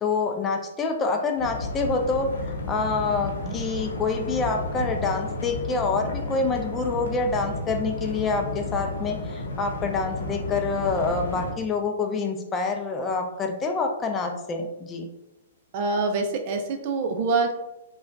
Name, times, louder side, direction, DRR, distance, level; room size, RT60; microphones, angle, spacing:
voice 1, 0.0-15.1, left 4 dB, 20° left, 3 dB, 0.4 m, -27 dB
sound 1, 1.4-11.5, left 2 dB, 80° left, 0.7 m, -32 dB
voice 2, 15.7-17.5, right 3 dB, 50° right, 5 dB, 0.4 m, -26 dB
3.5 x 2.2 x 2.5 m, 0.93 s
hypercardioid pair, 125°, 0 cm